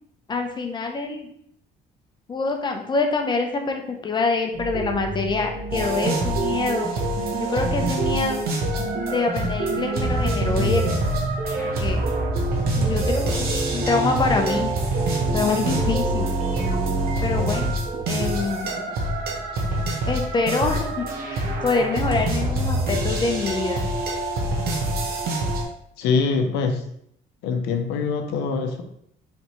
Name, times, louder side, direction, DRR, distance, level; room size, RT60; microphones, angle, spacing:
voice 1, 0.3-1.3 2.3-6.9 7.4-8.4 9.1-10.9 11.6-12.0 12.8-14.7 15.3-16.3 17.2-17.7 18.1-18.9 20.1-21.0 21.3-23.8, left 3 dB, 25° left, 3 dB, 0.7 m, -25 dB
sound 1, 4.5-18.4, right 3 dB, 40° right, 0.9 m, -30 dB
sound 2, 5.7-25.6, right 1 dB, 65° right, 1.0 m, -25 dB
voice 2, 26.0-26.8 27.4-28.8, left 5 dB, 90° left, 5 dB, 0.7 m, -23 dB
4.1 x 3.4 x 3.1 m, 0.71 s
cardioid pair, 110°, 17 cm